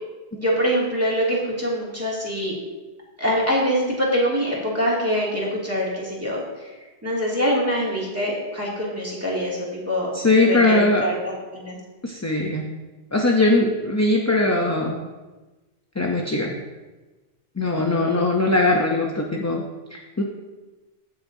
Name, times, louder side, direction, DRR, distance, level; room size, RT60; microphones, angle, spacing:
voice 1, 0.3-2.6 3.2-6.7 7.0-10.1 10.4-11.8 17.9-18.3, equal, 15° right, -6 dB, 2.5 m, -24 dB
voice 2, 10.1-11.1 12.0-12.6 13.1-15.0 16.0-16.6 17.6-20.2, left 2 dB, 20° left, 1 dB, 0.6 m, -20 dB
16.0 x 6.2 x 2.7 m, 1.2 s
omnidirectional pair, 1.1 m